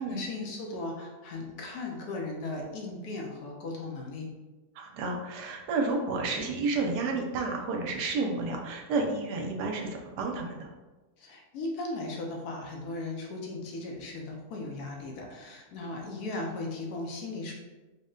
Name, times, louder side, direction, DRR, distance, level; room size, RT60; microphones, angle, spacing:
voice 1, 0.0-4.3 11.2-17.5, left 2 dB, 70° left, 0 dB, 1.1 m, -37 dB
voice 2, 4.8-10.7, right 3 dB, 75° right, 2 dB, 1.1 m, -31 dB
3.9 x 2.1 x 3.6 m, 1.2 s
omnidirectional pair, 1.8 m